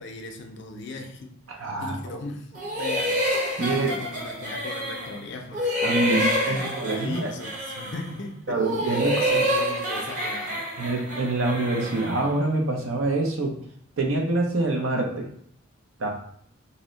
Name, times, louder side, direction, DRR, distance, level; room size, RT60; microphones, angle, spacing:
voice 1, 0.0-5.8 6.1-10.7, left 3 dB, 55° left, 4 dB, 0.4 m, -38 dB
voice 2, 1.5-2.2 3.6-3.9 5.8-7.3 8.5-9.4 10.8-13.5 14.0-15.3 16.0-16.1, right 2 dB, 75° right, 1 dB, 0.6 m, -26 dB
sound 1, 2.5-5.2 5.5-8.1 8.5-12.3, equal, 40° right, 0.8 m, -27 dB
2.7 x 2.1 x 3.8 m, 0.66 s
head